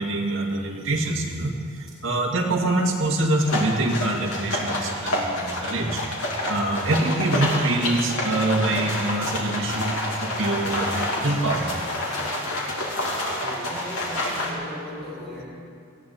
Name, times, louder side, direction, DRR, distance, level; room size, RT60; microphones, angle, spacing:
voice 1, 0.0-6.2 6.5-11.8, right 2 dB, 60° right, -1 dB, 2.2 m, -25 dB
sound 1, 3.4-14.5, left 1 dB, 80° left, 3.0 m, -28 dB
voice 2, 5.0-5.7 13.3-15.5, left 1 dB, ahead, -11 dB, 4.8 m, -38 dB
19.0 x 15.5 x 4.2 m, 2.4 s
head